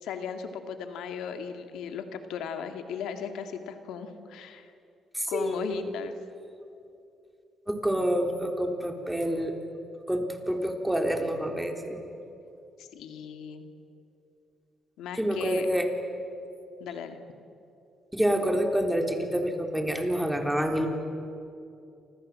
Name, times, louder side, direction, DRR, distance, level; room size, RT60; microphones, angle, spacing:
voice 1, 0.0-4.7 5.3-6.1 12.8-13.7 15.0-15.7 16.8-17.2, left 7 dB, 85° left, 6 dB, 2.2 m, -36 dB
voice 2, 5.1-6.1 7.7-9.6 10.1-12.0 15.2-15.9 18.1-20.9, equal, 5° right, 3 dB, 3.9 m, -28 dB
29.0 x 26.5 x 7.7 m, 2.7 s
cardioid pair, 90°, 0 cm